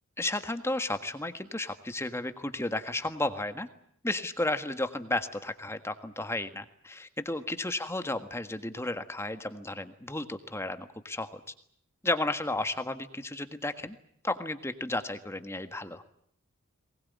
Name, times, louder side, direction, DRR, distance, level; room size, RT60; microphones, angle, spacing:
voice 1, 0.2-3.7 4.0-11.4 12.0-14.0 14.2-16.0, left 2 dB, 10° left, 9 dB, 1.6 m, -33 dB
22.5 x 20.0 x 9.6 m, 0.67 s
head